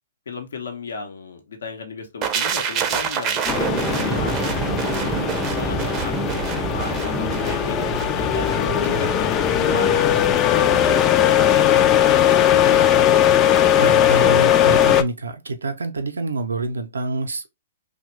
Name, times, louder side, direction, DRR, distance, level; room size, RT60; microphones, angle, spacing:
voice 1, 0.3-4.5 5.6-6.2 6.6-10.8 11.3-11.7 12.5-12.9, left 4 dB, 75° left, 0.8 m, -34 dB
sound 1, 2.2-12.1 12.4-12.6, right 6 dB, 30° right, 0.5 m, -28 dB
sound 2, 3.4-15.0, left 10 dB, 30° left, 0.3 m, -19 dB
voice 2, 8.5-9.0 12.6-13.3 13.7-17.5, right 2 dB, 85° right, 0.5 m, -28 dB
3.0 x 2.2 x 3.1 m
hypercardioid pair, 125°, 0 cm